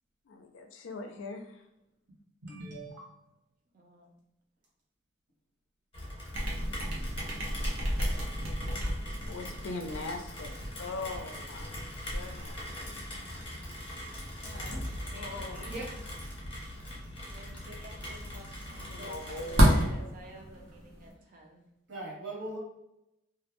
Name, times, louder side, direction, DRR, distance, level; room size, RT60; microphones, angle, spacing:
voice 1, 0.3-1.6 9.3-10.5 10.8-11.7 12.1-12.8 15.1-15.7 18.7-20.1, left 3 dB, 70° left, 5 dB, 0.4 m, -41 dB
voice 2, 2.4-3.0 8.7-8.9 15.7-15.9 21.9-22.6, right 2 dB, 60° right, -4 dB, 1.0 m, -40 dB
voice 3, 3.7-4.2 12.8-13.4 14.4-15.7 16.9-21.6, right 1 dB, 45° right, 1 dB, 0.5 m, -52 dB
Rain, 5.9-19.9, left 1 dB, 30° left, 0.7 m, -42 dB
sound 1, 6.3-21.1, equal, 85° right, 0.7 m, -33 dB
2.3 x 2.1 x 2.9 m, 0.86 s
head